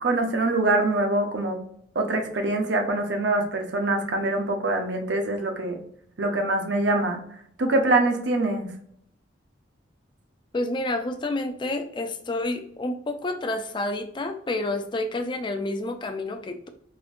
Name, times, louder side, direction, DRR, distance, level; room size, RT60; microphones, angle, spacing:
voice 1, 0.0-1.6 1.9-5.8 6.2-7.2 7.6-8.7, right 2 dB, 65° right, 4 dB, 0.7 m, -24 dB
voice 2, 10.5-16.7, left 2 dB, 25° left, 7 dB, 0.4 m, -29 dB
4.2 x 2.5 x 2.4 m, 0.68 s
head